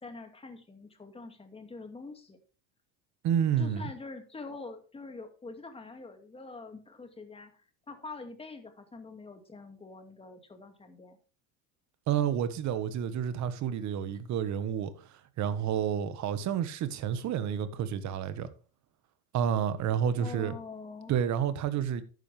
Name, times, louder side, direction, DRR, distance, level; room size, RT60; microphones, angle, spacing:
voice 1, 0.0-2.4 3.6-7.5 7.9-11.2 20.2-21.1, left 3 dB, 15° left, 2.2 m, -45 dB
voice 2, 3.2-3.9 12.1-14.9 15.4-18.5 19.3-20.5 21.1-22.0, right 9 dB, 50° right, 1.4 m, -29 dB
11.5 x 9.3 x 3.4 m
supercardioid pair, 120°, 36 cm